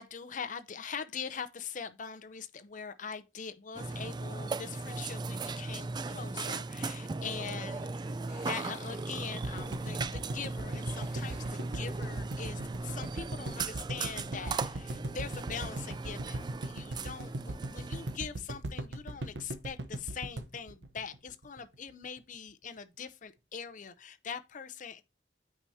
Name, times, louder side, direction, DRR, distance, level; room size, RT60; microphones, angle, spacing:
voice 1, 0.0-8.2 8.4-25.0, left 6 dB, 45° left, 0.6 m, -42 dB
Burping eructation, 3.7-18.2, right 3 dB, 25° right, 0.3 m, -38 dB
sound 1, 7.6-13.7, left 1 dB, 5° right, 4.5 m, -57 dB
sound 2, 9.4-21.6 21.9-22.0 22.2-22.3, right 1 dB, 80° right, 0.9 m, -39 dB
8.7 x 4.8 x 2.7 m
head